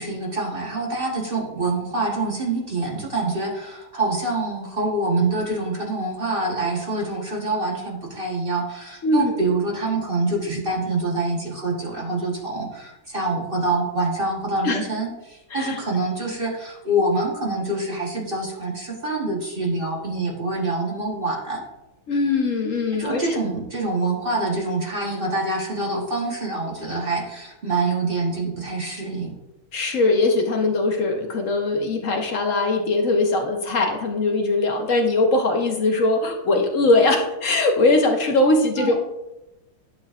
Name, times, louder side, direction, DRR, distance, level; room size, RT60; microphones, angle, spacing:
voice 1, 0.0-21.6 23.0-29.3 38.8-38.9, right 2 dB, 35° right, -2 dB, 1.1 m, -26 dB
voice 2, 9.0-9.4 14.6-14.8 15.5-15.8 22.1-23.4 29.7-38.9, left 2 dB, 50° left, 2 dB, 1.0 m, -21 dB
11.5 x 6.8 x 2.4 m, 0.96 s
omnidirectional pair, 2.2 m